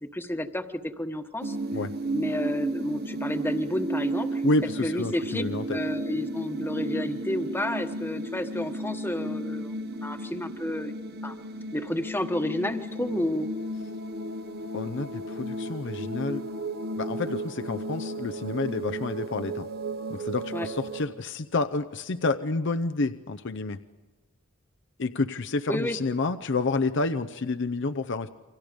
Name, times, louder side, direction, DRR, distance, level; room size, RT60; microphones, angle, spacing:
voice 1, 0.1-0.6 1.0-1.6 2.1-4.4 4.8-9.7 10.0-10.9 11.2-11.3 11.7-13.5 20.5-20.7 25.7-26.0, left 1 dB, 10° left, 7 dB, 1.2 m, -30 dB
sound 1, 1.4-21.1, right 1 dB, 50° right, 1.0 m, -34 dB
voice 2, 4.4-5.8 14.7-16.4 17.0-19.7 20.1-23.8 25.0-28.3, left 3 dB, 60° left, 9 dB, 0.7 m, -29 dB
29.0 x 25.0 x 5.2 m, 1.2 s
head